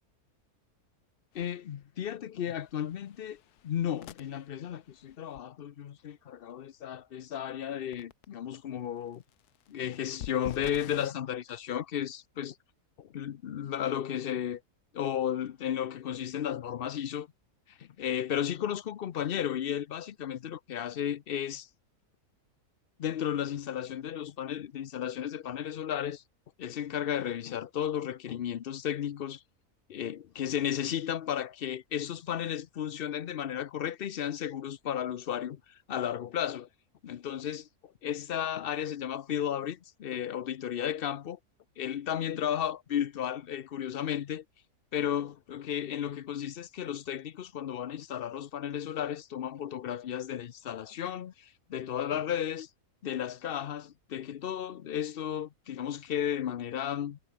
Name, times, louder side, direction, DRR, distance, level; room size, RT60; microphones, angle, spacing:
sound 1, 1.3-1.4 1.8-2.1 2.6-5.4 7.6-7.7 7.9-8.3 9.1-11.1, left 12 dB, 90° left, 1.3 m, -47 dB
voice 1, 1.3-9.2 9.7-12.6 13.0-14.6 14.9-17.3 17.7-21.7 23.0-26.2 26.6-29.4 29.9-36.7 37.0-41.4 41.8-44.4 44.9-52.7 53.0-57.2, left 10 dB, 60° left, 0.6 m, -34 dB
omnidirectional pair, 1.6 m